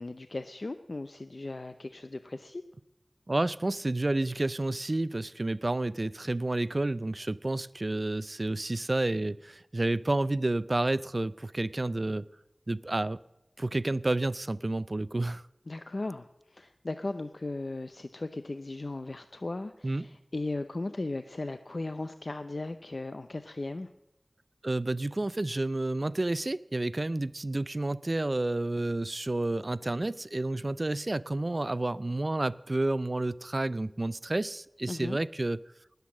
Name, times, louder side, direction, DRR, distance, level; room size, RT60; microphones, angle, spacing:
voice 1, 0.0-2.6 15.7-23.9 34.9-35.2, left 2 dB, 65° left, 10 dB, 0.6 m, -37 dB
voice 2, 3.3-12.2 12.7-13.2 13.6-15.4 19.8-20.1 24.6-35.6, right 2 dB, 50° right, 18 dB, 0.4 m, -30 dB
20.0 x 8.1 x 7.4 m, 0.89 s
wide cardioid pair, 40°, 0 cm